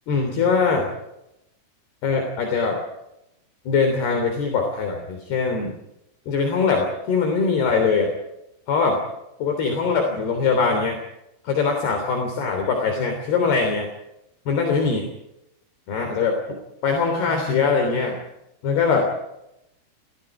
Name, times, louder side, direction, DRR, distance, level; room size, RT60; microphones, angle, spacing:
voice 1, 0.1-0.9 2.0-2.8 3.7-5.7 6.3-8.1 8.7-9.0 9.4-11.0 11.5-13.9 14.5-15.1 15.9-16.4 16.8-18.2 18.6-19.1, left 5 dB, 60° left, 3 dB, 5.1 m, -22 dB
29.5 x 24.5 x 5.0 m, 0.87 s
omnidirectional pair, 5.4 m